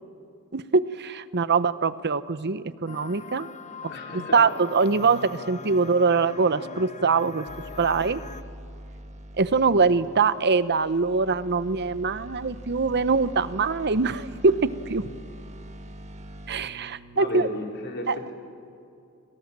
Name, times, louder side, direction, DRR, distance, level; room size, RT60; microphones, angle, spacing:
voice 1, 0.5-3.5 3.8-3.9 4.3-7.5 7.8-8.2 9.4-15.1 16.5-17.5 18.1-18.3, right 4 dB, 50° right, 15 dB, 0.9 m, -23 dB
sound 1, 2.9-8.4, left 5 dB, 35° left, 0.9 m, -41 dB
voice 2, 3.9-4.4 17.1-18.3, left 1 dB, 55° left, 1 dB, 4.7 m, -34 dB
sound 2, 7.5-17.3, equal, 30° right, 1.7 m, -43 dB
29.0 x 25.0 x 7.5 m, 2.6 s
head